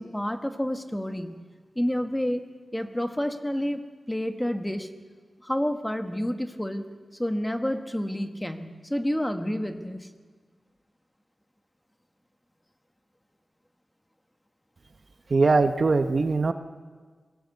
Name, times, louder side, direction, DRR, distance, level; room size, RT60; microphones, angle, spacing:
voice 1, 0.0-1.4 1.7-2.4 2.7-3.8 4.1-4.9 5.4-6.9 7.2-10.1, equal, 10° left, 6 dB, 1.4 m, -29 dB
voice 2, 15.3-16.5, right 3 dB, 45° right, 9 dB, 0.8 m, -21 dB
22.0 x 16.5 x 8.2 m, 1.5 s
wide cardioid pair, 125°, 0 cm